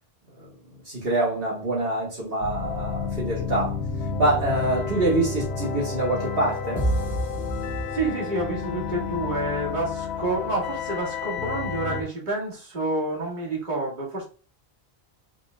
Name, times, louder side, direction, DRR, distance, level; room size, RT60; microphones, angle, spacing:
voice 1, 0.9-3.8 4.2-6.9, right 2 dB, 65° right, 1.6 m, -25 dB
sound 1, 2.4-12.0, left 5 dB, 90° left, 0.9 m, -31 dB
sound 2, 6.8-8.6, right 1 dB, 5° left, 1.7 m, -28 dB
voice 2, 7.9-14.2, right 2 dB, 50° right, 1.8 m, -29 dB
5.0 x 3.7 x 2.3 m
omnidirectional pair, 1.1 m